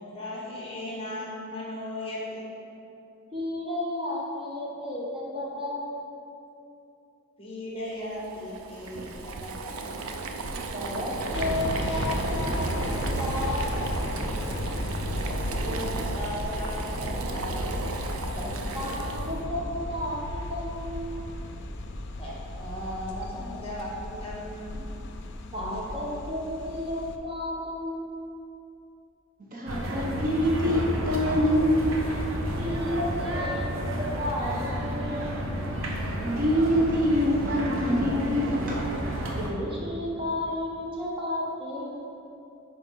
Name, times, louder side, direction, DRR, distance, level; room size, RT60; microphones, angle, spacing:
voice 1, 0.1-2.4 7.4-10.0 15.1-17.8 22.2-24.8, left 1 dB, 25° left, -5 dB, 1.5 m, -37 dB
voice 2, 3.3-6.1 10.7-13.8 18.4-21.2 25.5-28.2 32.5-35.5 39.4-42.0, left 1 dB, 25° right, -5 dB, 1.3 m, -33 dB
Boiling, 8.2-19.4, right 3 dB, 90° right, 0.5 m, -33 dB
sound 1, 11.3-27.2, left 1 dB, 60° left, 0.5 m, -35 dB
voice 3, 29.4-32.0 36.2-38.8, equal, 40° right, -3 dB, 0.8 m, -25 dB
sound 2, 29.7-39.5, equal, 70° right, 1.0 m, -31 dB
10.5 x 4.3 x 3.8 m, 2.7 s
head